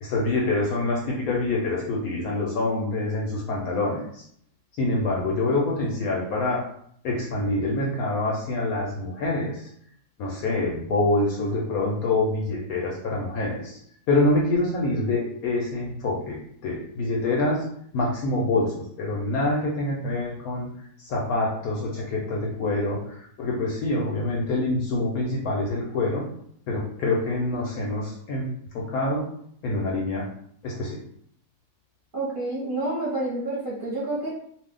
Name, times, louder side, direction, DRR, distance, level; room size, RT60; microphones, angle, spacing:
voice 1, 0.0-4.2 4.7-6.7 7.0-9.7 10.2-13.8 14.1-16.4 16.6-17.7 17.9-20.7 21.0-26.3 26.7-28.5 28.7-29.3 29.6-30.3 30.6-31.0, left 2 dB, 70° left, -2 dB, 0.9 m, -26 dB
voice 2, 32.1-34.3, right 2 dB, 40° right, -8 dB, 0.9 m, -28 dB
2.6 x 2.4 x 3.6 m, 0.67 s
omnidirectional pair, 1.9 m